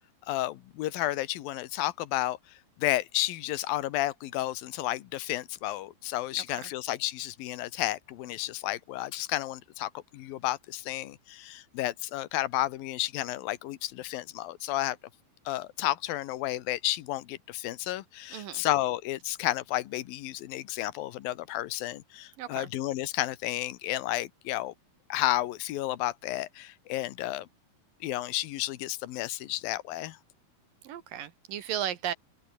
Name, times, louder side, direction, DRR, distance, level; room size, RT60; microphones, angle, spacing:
voice 1, 0.3-15.0 15.5-24.7 25.1-27.5 28.0-30.2, left 15 dB, 85° left, 3.0 m, -32 dB
voice 2, 18.3-18.6 22.4-22.7 30.8-32.1, right 10 dB, 75° right, 3.2 m, -35 dB
open air
omnidirectional pair, 4.1 m